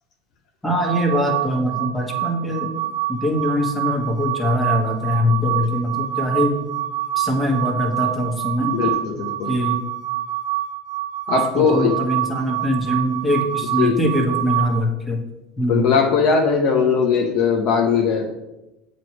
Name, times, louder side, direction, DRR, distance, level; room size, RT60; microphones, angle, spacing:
voice 1, 0.6-2.7 3.1-6.7 7.1-8.8 9.5-9.8 11.5-15.2 15.6-15.8, equal, 10° left, 1 dB, 1.7 m, -22 dB
sound 1, 0.8-14.8, right 14 dB, 50° right, 0.8 m, -26 dB
voice 2, 8.7-9.6 11.3-12.0 13.8-14.1 15.7-18.3, left 5 dB, 60° left, 2 dB, 0.9 m, -19 dB
7.6 x 3.2 x 6.1 m, 0.97 s
hypercardioid pair, 95°, 0 cm